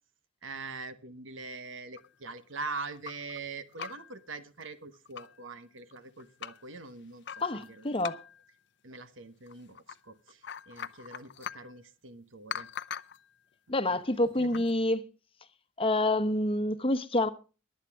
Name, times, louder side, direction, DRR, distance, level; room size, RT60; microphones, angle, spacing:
voice 1, 0.4-7.9 8.8-12.7 13.9-14.0 14.4-14.6, right 3 dB, 75° right, 1.2 m, -43 dB
sound 1, 2.0-3.4 3.7-4.2 4.6-4.7 4.9-5.4 5.9-6.7 7.2-8.5 9.5-10.0 10.3-11.7 12.5-13.3 14.4-14.7, left 7 dB, 60° left, 0.6 m, -42 dB
voice 2, 7.4-8.2 13.7-15.1 15.8-17.3, left 1 dB, 30° left, 1.0 m, -27 dB
22.5 x 8.2 x 3.5 m
head